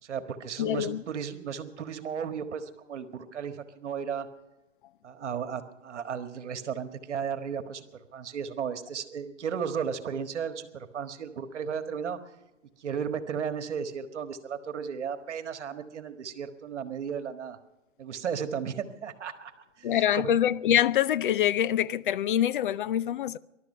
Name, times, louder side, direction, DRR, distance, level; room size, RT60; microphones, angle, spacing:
voice 1, 0.0-4.3 5.0-7.8 8.1-12.2 12.8-17.6 18.0-19.5 19.8-20.2, right 7 dB, 65° right, 1.6 m, -34 dB
voice 2, 0.6-1.0 19.8-23.4, left 11 dB, 45° left, 0.5 m, -25 dB
21.0 x 12.0 x 5.5 m
hypercardioid pair, 140°, 38 cm